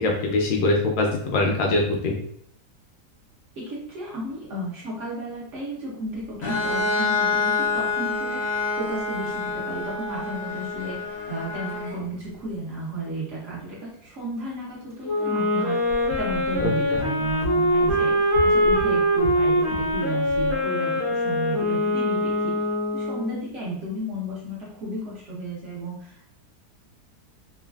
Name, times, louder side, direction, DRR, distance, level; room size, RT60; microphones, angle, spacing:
voice 1, 0.0-2.2 16.6-16.7, left 2 dB, 75° left, 1 dB, 1.1 m, -23 dB
voice 2, 3.6-22.5 22.9-26.3, right 1 dB, 60° right, -5 dB, 0.9 m, -33 dB
Bowed string instrument, 6.4-12.0, left 3 dB, 55° left, 0.8 m, -27 dB
Wind instrument woodwind instrument, 15.0-23.4, equal, 20° left, 0.4 m, -23 dB
sound 1, 15.9-20.0 20.3-20.6, left 1 dB, 75° right, 1.2 m, -35 dB
3.1 x 2.2 x 2.3 m, 0.67 s
omnidirectional pair, 1.7 m